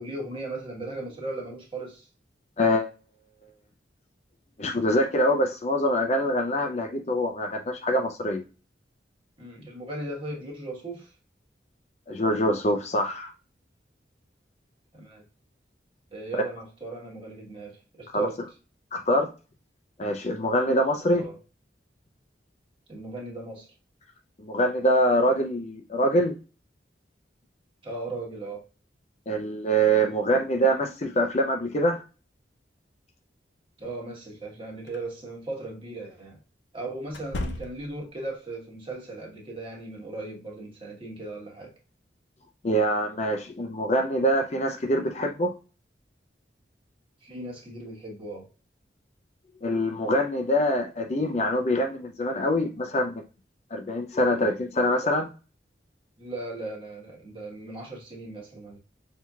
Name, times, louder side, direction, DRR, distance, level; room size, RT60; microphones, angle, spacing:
voice 1, 0.0-2.1 9.4-11.1 14.9-15.2 16.1-18.4 21.1-21.4 22.9-23.7 27.8-28.7 33.8-36.4 36.7-41.8 47.2-48.5 56.2-58.8, right 2 dB, 30° right, 1.3 m, -37 dB
voice 2, 2.6-2.9 4.6-8.4 12.1-13.3 18.1-18.3 18.9-19.3 20.0-21.2 24.4-26.3 29.3-32.0 42.6-45.5 49.6-53.2 53.7-55.3, equal, 35° left, 0.5 m, -24 dB
sound 1, 34.9-35.0 37.1-38.1, left 2 dB, 85° left, 0.6 m, -35 dB
6.0 x 2.8 x 2.3 m
head